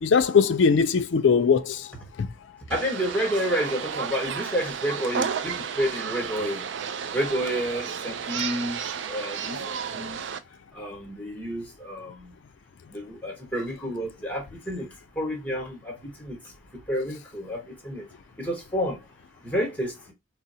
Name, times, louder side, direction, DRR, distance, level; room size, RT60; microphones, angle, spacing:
voice 1, 0.0-2.3 9.6-9.7, left 5 dB, 65° left, 0.4 m, -21 dB
voice 2, 2.7-6.6 7.1-8.8 9.1-10.2 10.7-12.3 12.9-14.9 15.2-16.4 16.9-18.0 18.4-19.0 19.4-20.1, equal, 10° left, 1.1 m, -30 dB
sound 1, 2.7-10.4, right 7 dB, 65° right, 0.4 m, -32 dB
4.0 x 2.0 x 2.7 m
head